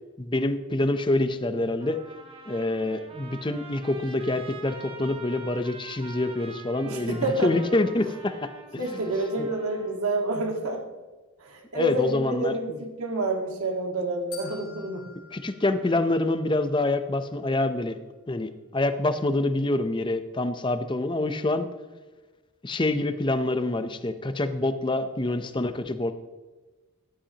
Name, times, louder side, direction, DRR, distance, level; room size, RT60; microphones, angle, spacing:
voice 1, 0.2-2.0 2.5-8.8 11.7-12.8 15.3-18.0 18.3-21.7 22.6-26.1, left 2 dB, 20° left, 10 dB, 0.6 m, -26 dB
Trumpet, 1.8-10.0, right 4 dB, 25° right, 1.4 m, -45 dB
voice 2, 6.8-7.5 8.8-10.8 11.4-15.1, right 2 dB, 90° right, 3 dB, 1.7 m, -28 dB
sound 1, 14.3-16.6, left 5 dB, 80° left, 3.5 m, -47 dB
15.0 x 11.5 x 2.9 m, 1.3 s
head